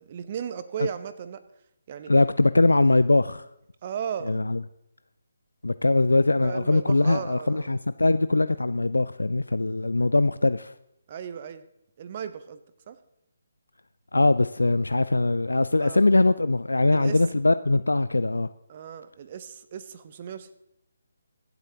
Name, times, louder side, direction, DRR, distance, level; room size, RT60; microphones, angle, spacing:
voice 1, 0.0-1.4 1.9-2.1 3.8-4.4 6.4-7.7 11.1-11.6 12.0-12.6 12.9-13.0 15.8-16.0 16.9-17.2 18.7-20.6, right 8 dB, 35° right, 0.8 m, -36 dB
voice 2, 2.1-3.4 4.3-4.6 5.6-10.7 14.1-18.5, left 2 dB, 70° left, 0.3 m, -22 dB
24.5 x 8.1 x 2.9 m
figure-of-eight pair, 145°, 0 cm